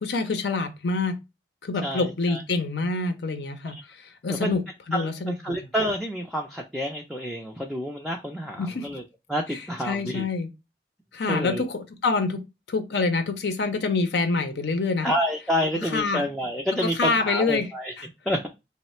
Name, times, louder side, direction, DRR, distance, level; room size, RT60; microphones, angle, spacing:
voice 1, 0.0-1.2 1.6-4.6 4.9-5.6 8.6-8.9 9.5-10.5 11.1-12.4 12.7-15.1 15.9-16.2 17.0-18.1, left 3 dB, 70° left, 0.6 m, -26 dB
voice 2, 1.8-2.4 3.6-3.7 4.3-4.6 4.9-9.0 9.3-10.2 11.2-11.6 15.0-17.9 18.3-18.5, equal, ahead, 0.4 m, -28 dB
3.1 x 2.1 x 4.1 m
head